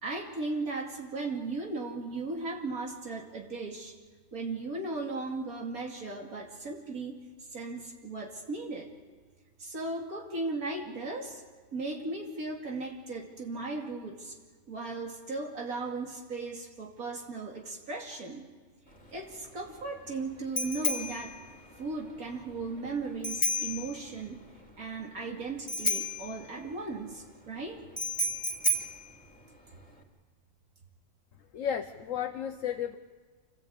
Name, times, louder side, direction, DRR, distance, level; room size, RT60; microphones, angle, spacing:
voice 1, 0.0-3.9 4.3-7.2 7.5-8.9 9.6-11.4 11.7-14.4 14.7-18.5 19.1-21.4 21.8-24.4 24.8-27.8, right 3 dB, 85° right, 1 dB, 3.0 m, -36 dB
Bicycle bell, 18.9-30.0, left 1 dB, 5° left, 3.0 m, -34 dB
voice 2, 31.5-33.0, left 9 dB, 65° left, 5 dB, 1.2 m, -33 dB
26.5 x 17.0 x 8.8 m, 1.5 s
omnidirectional pair, 1.5 m